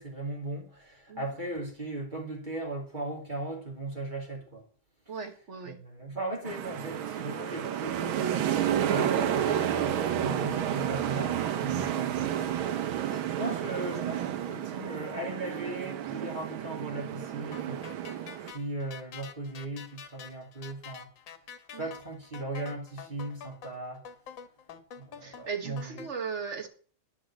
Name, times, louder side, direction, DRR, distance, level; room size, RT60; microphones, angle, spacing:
voice 1, 0.0-4.6 5.6-12.5 13.4-21.1 21.7-24.0 25.0-26.0, right 2 dB, 25° right, 2.8 m, -38 dB
voice 2, 5.1-5.8 13.0-13.3 21.7-21.9 25.2-26.7, right 5 dB, 40° right, 1.5 m, -38 dB
sound 1, 6.5-18.5, right 10 dB, 90° right, 1.7 m, -31 dB
sound 2, 17.5-26.1, left 7 dB, 70° left, 1.8 m, -47 dB
10.0 x 6.2 x 7.1 m
omnidirectional pair, 2.2 m